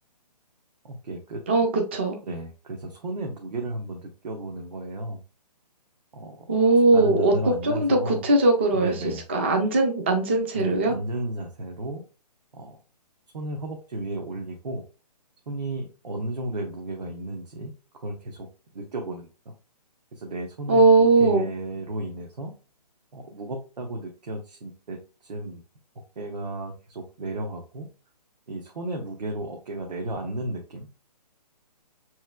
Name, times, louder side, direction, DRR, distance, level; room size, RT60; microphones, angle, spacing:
voice 1, 0.8-1.4 2.3-5.2 6.1-6.5 6.9-8.2 8.7-9.2 10.5-12.0 12.5-12.8 13.3-14.8 15.5-18.5 18.7-19.5 20.1-22.5 23.1-25.6 26.2-27.9 28.5-30.9, right 1 dB, 75° right, 2 dB, 1.0 m, -34 dB
voice 2, 1.5-2.2 6.5-7.3 7.6-8.9 9.3-10.9 20.7-21.5, right 2 dB, 20° right, 3 dB, 0.3 m, -20 dB
5.7 x 3.0 x 2.2 m, 0.33 s
hypercardioid pair, 165°, 21 cm